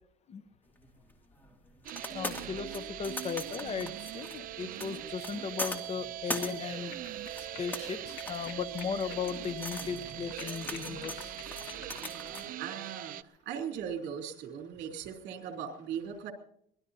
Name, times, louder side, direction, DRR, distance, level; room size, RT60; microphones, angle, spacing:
sound 1, 0.8-12.5, left 1 dB, 10° left, 2.4 m, -42 dB
sound 2, 1.8-13.2, right 13 dB, 50° right, 0.6 m, -41 dB
voice 1, 2.1-7.0 7.4-11.3 12.1-12.2, left 6 dB, 35° left, 12 dB, 0.9 m, -37 dB
sound 3, 6.3-12.5, left 10 dB, 75° left, 1.6 m, -51 dB
voice 2, 11.9-16.3, right 8 dB, 75° right, 3 dB, 3.4 m, -39 dB
25.0 x 19.0 x 2.8 m, 0.69 s
cardioid pair, 135°, 18 cm